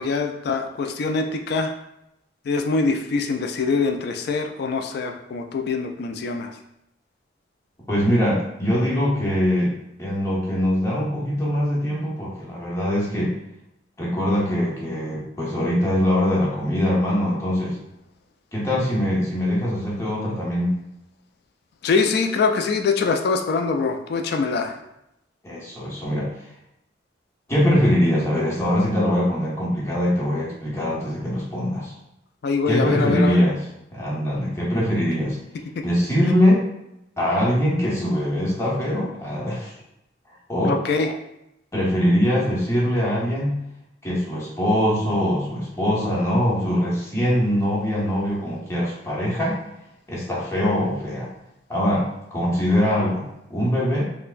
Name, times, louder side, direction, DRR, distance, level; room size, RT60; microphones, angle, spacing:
voice 1, 0.0-1.7 2.5-6.5 21.8-24.8 32.4-33.4 35.8-35.9 40.7-41.1, left 4 dB, 60° left, 5 dB, 0.3 m, -23 dB
voice 2, 7.9-9.7 10.0-13.3 14.0-17.8 18.5-20.8 25.4-26.5 27.5-31.9 32.7-33.6 33.9-35.4 35.8-36.6 37.2-39.7 40.5-40.8 41.7-43.6 44.0-49.6 50.1-51.3 51.7-53.2 53.5-54.0, equal, 15° left, -6 dB, 0.9 m, -22 dB
4.3 x 2.1 x 2.5 m, 0.83 s
head